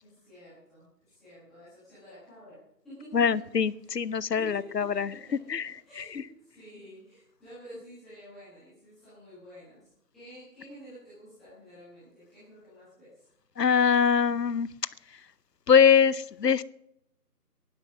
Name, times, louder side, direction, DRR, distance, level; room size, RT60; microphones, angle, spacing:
voice 1, 0.0-2.6 2.8-3.9 4.3-4.6 4.9-13.2, right 1 dB, ahead, -16 dB, 1.4 m, -50 dB
voice 2, 3.1-5.1 5.5-6.2 13.6-14.7 15.7-16.6, left 7 dB, 75° left, 20 dB, 0.7 m, -23 dB
16.5 x 11.5 x 6.0 m, 0.81 s
figure-of-eight pair, 165°, 48 cm